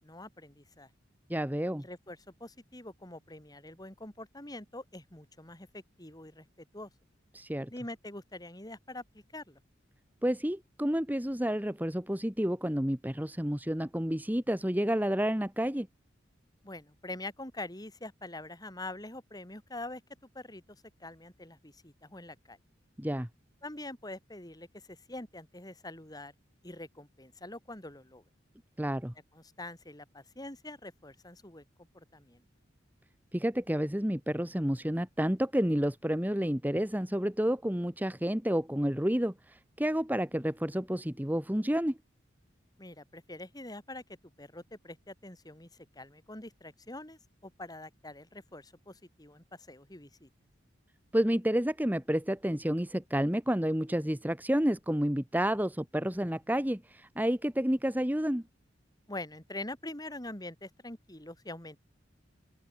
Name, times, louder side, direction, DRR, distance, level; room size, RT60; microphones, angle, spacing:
voice 1, 0.0-0.9 1.8-6.5 6.7-6.9 7.7-9.6 16.6-20.0 20.3-20.6 21.0-22.6 23.6-26.3 26.6-28.2 29.3-32.4 42.8-44.0 44.4-50.3 59.1-61.8, left 2 dB, 20° left, 4.2 m, -45 dB
voice 2, 1.3-1.8 7.3-7.7 10.2-15.9 23.0-23.3 28.8-29.1 33.3-42.0 51.1-58.4, equal, 10° right, 1.6 m, -30 dB
open air
head